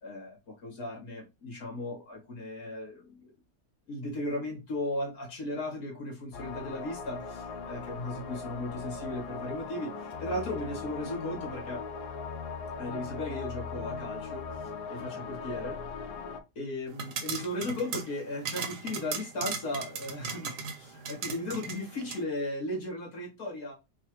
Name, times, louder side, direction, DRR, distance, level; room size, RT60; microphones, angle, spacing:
voice 1, 0.0-3.3 3.9-11.8 12.8-15.8 16.6-23.7, left 1 dB, 65° left, -2 dB, 2.2 m, -36 dB
sound 1, 6.3-16.4, left 4 dB, 80° left, 1.2 m, -39 dB
sound 2, 16.9-22.2, right 5 dB, 90° right, 1.3 m, -38 dB
4.6 x 2.3 x 3.0 m, 0.26 s
omnidirectional pair, 1.7 m